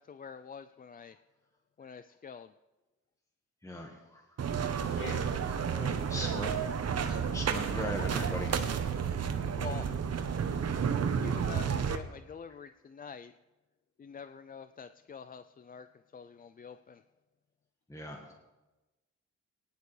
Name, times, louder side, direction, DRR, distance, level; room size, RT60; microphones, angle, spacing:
voice 1, 0.1-1.1 1.8-2.5 9.6-9.9 11.2-13.3 14.0-15.9 16.1-17.0, left 6 dB, 30° left, 11 dB, 0.4 m, -46 dB
voice 2, 3.6-4.2 6.1-6.5 7.3-8.7 17.9-18.2, left 1 dB, 10° left, 1 dB, 1.5 m, -39 dB
sound 1, 4.4-12.0, right 7 dB, 60° right, 1.0 m, -31 dB
voice 3, 4.9-6.6 7.0-7.3, left 2 dB, 45° left, -2 dB, 5.3 m, -45 dB
17.5 x 10.5 x 3.3 m, 1.1 s
cardioid pair, 80°, 30 cm